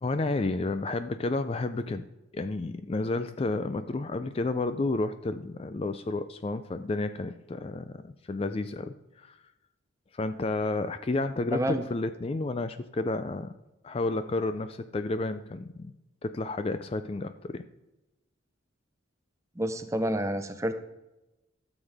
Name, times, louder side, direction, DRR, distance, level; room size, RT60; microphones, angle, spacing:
voice 1, 0.0-2.1 2.3-9.4 10.1-13.5 13.8-15.9 16.2-17.6, left 2 dB, 30° left, 11 dB, 0.3 m, -31 dB
voice 2, 11.5-11.8 19.6-20.7, right 1 dB, 15° right, 8 dB, 0.6 m, -29 dB
13.0 x 7.2 x 3.4 m, 0.99 s
head